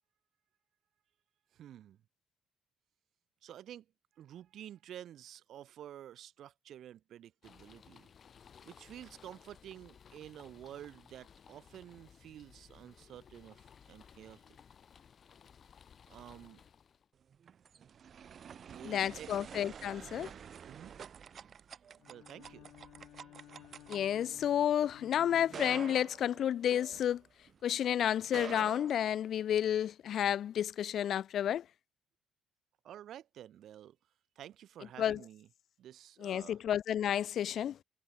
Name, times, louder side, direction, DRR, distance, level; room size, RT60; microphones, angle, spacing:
voice 1, 1.5-2.0 3.4-3.9 4.2-8.1 8.6-14.6 16.1-16.6 18.6-19.3 20.6-20.9 22.1-22.7 32.8-34.0 34.4-35.5 35.8-36.6, right 11 dB, 75° right, 1.8 m, -50 dB
sound 1, 7.4-17.1, left 7 dB, 50° left, 3.2 m, -59 dB
sound 2, 17.2-27.6 28.2-29.7, right 7 dB, 55° right, 1.0 m, -49 dB
voice 2, 18.8-20.3 23.9-27.2 27.6-31.6 35.0-35.2 36.2-37.8, left 10 dB, 65° left, 0.7 m, -31 dB
Bowed string instrument, 22.0-26.6, left 14 dB, 90° left, 1.5 m, -56 dB
cardioid pair, 90°, 0 cm